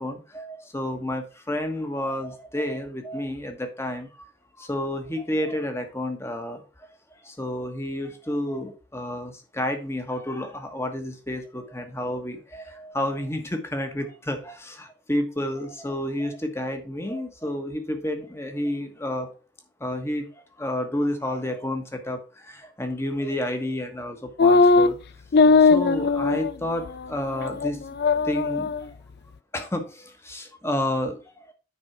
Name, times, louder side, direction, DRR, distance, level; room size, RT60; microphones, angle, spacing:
voice 1, 0.0-4.1 4.6-6.6 7.2-19.3 19.8-20.3 20.6-25.0 25.6-27.8 28.2-28.7 29.5-31.4, left 1 dB, 15° left, 6 dB, 1.3 m, -30 dB
sound 1, 24.4-24.9 25.3-26.5 26.9-27.0 27.4-27.7 28.0-28.8, left 4 dB, 50° left, 0.4 m, -18 dB
9.6 x 5.3 x 4.6 m, 0.33 s
head